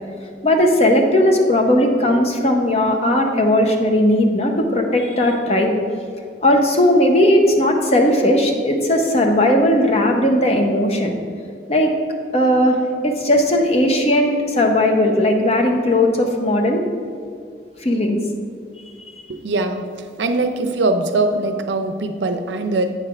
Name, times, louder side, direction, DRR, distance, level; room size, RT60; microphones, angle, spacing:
voice 1, 0.4-5.7 6.4-11.1 11.7-11.9 12.3-12.8 13.0-16.8 17.8-18.2, left 1 dB, 35° left, 3 dB, 0.7 m, -17 dB
voice 2, 19.3-19.9 20.2-22.9, right 2 dB, 80° right, 7 dB, 0.6 m, -21 dB
8.6 x 3.3 x 5.9 m, 2.2 s
head